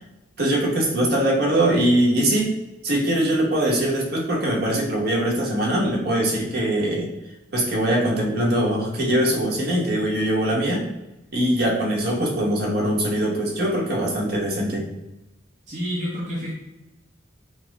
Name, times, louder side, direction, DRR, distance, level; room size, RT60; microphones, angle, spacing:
voice 1, 0.4-2.5 2.8-7.1 7.5-10.8 11.3-14.9, right 1 dB, 55° right, -2 dB, 1.2 m, -22 dB
voice 2, 15.7-16.5, equal, 40° right, -6 dB, 0.9 m, -28 dB
5.7 x 2.0 x 3.4 m, 0.96 s
head